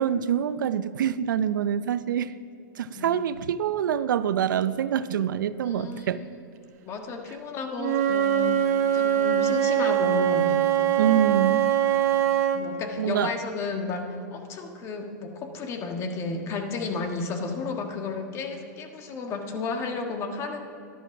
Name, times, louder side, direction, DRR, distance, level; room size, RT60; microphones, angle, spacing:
voice 1, 0.0-2.3 2.8-6.2 11.0-11.6 13.0-13.3, right 9 dB, 85° right, 15 dB, 0.5 m, -25 dB
voice 2, 5.6-6.4 6.8-8.7 8.9-10.5 11.9-12.0 12.5-20.7, left 4 dB, 30° left, 4 dB, 1.5 m, -32 dB
Wind instrument woodwind instrument, 7.8-12.6, right 10 dB, 55° right, 1.3 m, -23 dB
13.0 x 11.5 x 6.0 m, 2.6 s
supercardioid pair, 145°, 10 cm